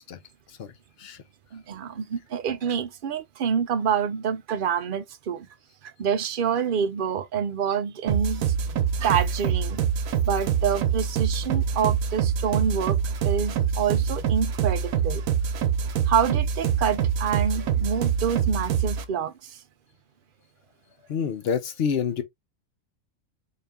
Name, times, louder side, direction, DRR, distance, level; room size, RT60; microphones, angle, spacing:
voice 1, 1.5-5.5 6.0-8.5 9.0-9.8 10.2-15.2 16.1-19.6, right 7 dB, 55° right, 0.6 m, -27 dB
sound 1, 8.1-19.1, right 7 dB, 90° right, 1.1 m, -25 dB
voice 2, 21.1-22.2, left 7 dB, 55° left, 0.8 m, -27 dB
3.7 x 2.7 x 3.5 m
omnidirectional pair, 1.4 m